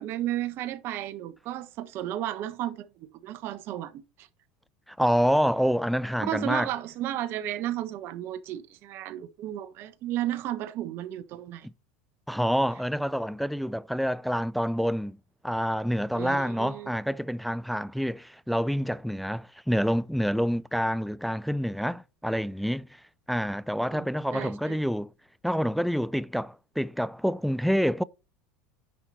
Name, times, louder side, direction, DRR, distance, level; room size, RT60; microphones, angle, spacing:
voice 1, 0.0-4.3 6.3-11.7 16.1-16.9 23.9-24.8, right 13 dB, 50° right, 1.1 m, -34 dB
voice 2, 4.9-6.7 11.6-11.7 12.3-15.2 15.4-22.9 23.3-25.1 25.4-28.0, equal, ahead, 0.3 m, -27 dB
9.9 x 5.7 x 3.0 m
supercardioid pair, 105°, 5 cm